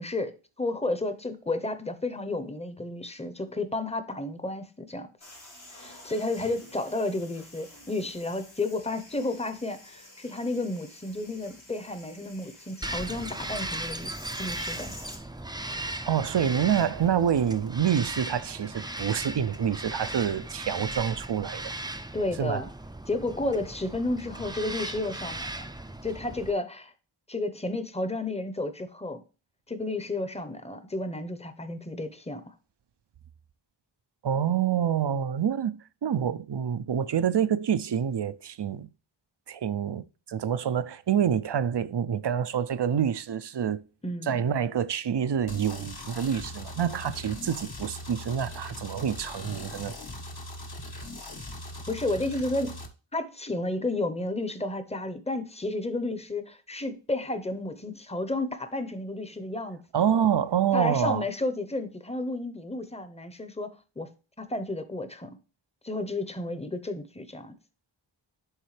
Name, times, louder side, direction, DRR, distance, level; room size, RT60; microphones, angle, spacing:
voice 1, 0.0-5.1 5.7-14.1 14.4-14.9 22.1-22.7 23.1-25.7 26.0-26.9 27.3-29.2 29.7-32.5 44.0-44.4 51.9-52.8 53.1-59.8 60.7-64.1 64.4-65.4 65.8-67.5, left 2 dB, 15° left, 0.8 m, -32 dB
sound 1, 5.2-15.2, left 1 dB, 75° left, 3.4 m, -50 dB
Bird vocalization bird call bird song, 12.8-26.5, right 2 dB, 10° right, 0.5 m, -37 dB
voice 2, 16.1-21.7 22.4-22.6 34.2-38.9 39.5-43.8 44.2-49.9 59.9-61.2, right 8 dB, 60° right, 0.5 m, -27 dB
sound 2, 45.5-52.9, left 1 dB, 50° left, 1.2 m, -40 dB
11.0 x 3.8 x 3.2 m
wide cardioid pair, 45°, 48 cm